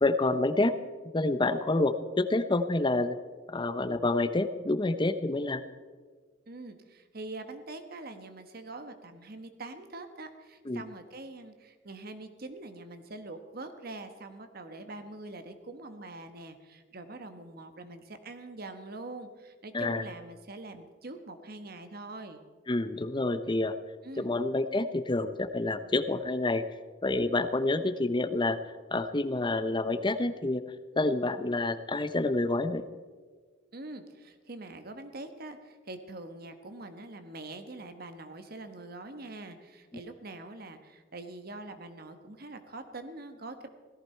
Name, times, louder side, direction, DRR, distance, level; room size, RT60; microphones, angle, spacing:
voice 1, 0.0-0.7 1.1-3.2 3.5-5.6 10.7-10.8 19.7-20.0 22.7-23.7 24.2-26.6 27.0-28.6 28.9-30.6 31.0-32.8, left 2 dB, 25° left, 11 dB, 0.7 m, -28 dB
voice 2, 6.5-22.4 24.0-24.3 33.7-43.7, right 2 dB, 50° right, 8 dB, 1.3 m, -44 dB
17.5 x 14.5 x 4.5 m, 1.5 s
head